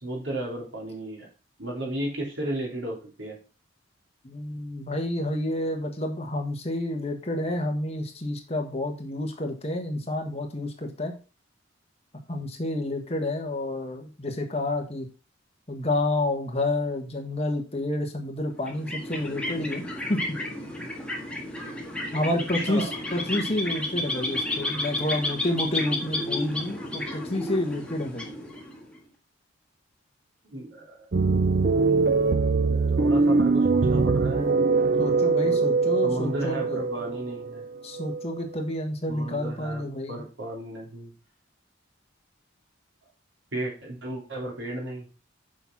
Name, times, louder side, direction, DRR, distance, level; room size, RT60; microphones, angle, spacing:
voice 1, 0.0-1.3 1.6-3.4 22.5-23.0 30.4-31.1 31.8-32.2 32.7-34.6 35.4-37.6 39.1-41.1 43.5-45.1, right 1 dB, 70° right, -1 dB, 3.3 m, -34 dB
voice 2, 4.2-11.1 12.3-15.1 15.7-20.2 22.1-28.3 35.0-36.8 37.8-40.2, left 1 dB, 30° left, 3 dB, 1.5 m, -29 dB
sound 1, 18.6-29.0, left 1 dB, 5° left, 1.7 m, -32 dB
sound 2, 31.1-38.6, right 4 dB, 45° right, 0.5 m, -23 dB
7.2 x 5.6 x 5.9 m, 0.34 s
head